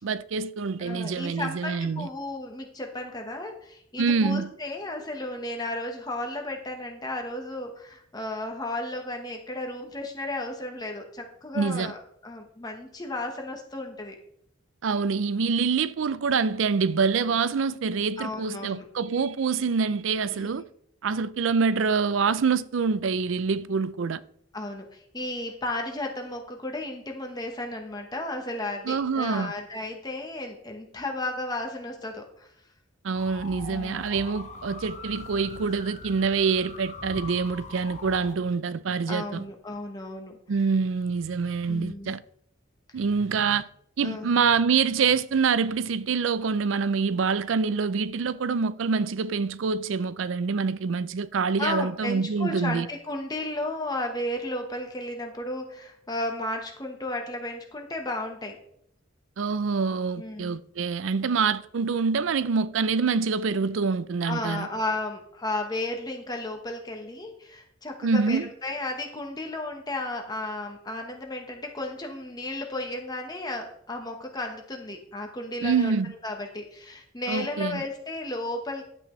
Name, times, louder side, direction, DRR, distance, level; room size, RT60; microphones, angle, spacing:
voice 1, 0.0-2.1 4.0-4.5 11.5-11.9 14.8-20.6 21.0-24.2 28.9-29.5 33.0-39.4 40.5-42.2 42.9-43.7 44.0-52.9 59.4-64.7 68.0-68.5 75.6-76.1 77.3-77.8, right 5 dB, 80° right, 0.5 m, -26 dB
voice 2, 0.8-14.2 18.2-18.9 20.3-20.5 24.5-32.5 33.7-34.0 39.1-40.4 41.7-42.1 44.0-44.3 51.6-58.6 60.2-60.6 64.2-76.0 76.2-78.8, left 2 dB, 20° left, 1.1 m, -34 dB
sound 1, 33.1-38.3, left 3 dB, 35° left, 1.0 m, -42 dB
11.0 x 9.4 x 3.2 m
head